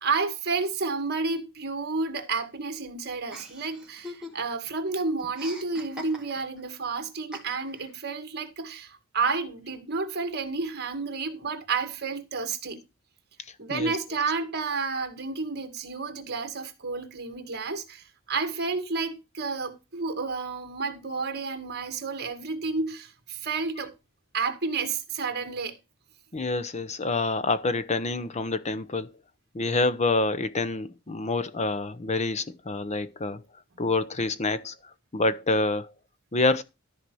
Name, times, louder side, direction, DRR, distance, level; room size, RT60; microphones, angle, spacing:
voice 1, 0.0-12.8 13.6-23.9 24.3-25.7, right 4 dB, 50° right, 2.0 m, -31 dB
Chuckle chortle, 3.3-4.7 4.9-6.6 7.3-7.9, equal, 5° right, 2.5 m, -42 dB
voice 2, 26.3-29.1 29.5-33.4 33.8-34.7 35.1-35.9 36.3-36.6, left 3 dB, 35° left, 0.8 m, -27 dB
13.5 x 4.6 x 6.3 m
head